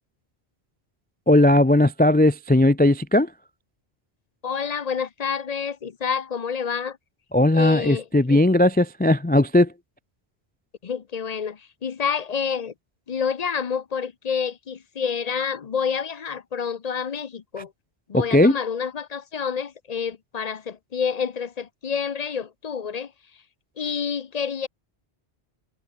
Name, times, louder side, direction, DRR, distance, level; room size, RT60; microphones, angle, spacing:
voice 1, 1.3-3.3 7.3-9.7 18.1-18.6, left 1 dB, 10° left, 0.4 m, -18 dB
voice 2, 4.4-7.0 7.5-8.4 10.8-12.7 13.1-17.7 18.1-23.1 23.8-24.7, left 6 dB, 40° left, 0.8 m, -28 dB
omnidirectional pair, 1.1 m